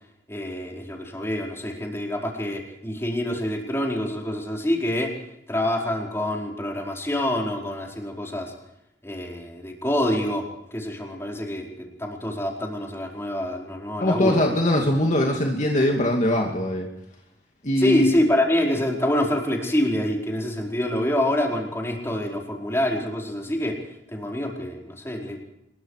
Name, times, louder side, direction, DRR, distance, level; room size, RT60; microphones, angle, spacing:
voice 1, 0.3-5.2 5.5-8.5 9.0-10.5 10.7-14.4 17.8-23.8 24.1-25.4, left 1 dB, 15° left, 0 dB, 4.9 m, -26 dB
voice 2, 14.0-16.9 17.6-18.1, left 1 dB, 40° left, 0 dB, 2.7 m, -21 dB
26.0 x 22.5 x 5.0 m, 0.80 s
head